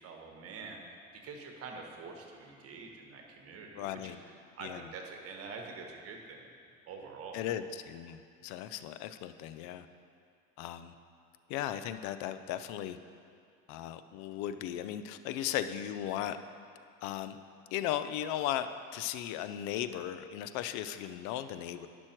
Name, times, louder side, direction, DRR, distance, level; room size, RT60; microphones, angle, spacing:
voice 1, 0.0-6.5 6.9-7.5, right 4 dB, 50° right, 2 dB, 1.4 m, -46 dB
voice 2, 3.8-4.2 4.6-4.8 7.3-9.9 10.6-10.9 11.5-13.0 13.7-16.4 17.0-17.4 17.7-21.9, left 11 dB, 75° left, 11 dB, 0.5 m, -36 dB
11.0 x 6.2 x 4.5 m, 2.3 s
supercardioid pair, 110°, 29 cm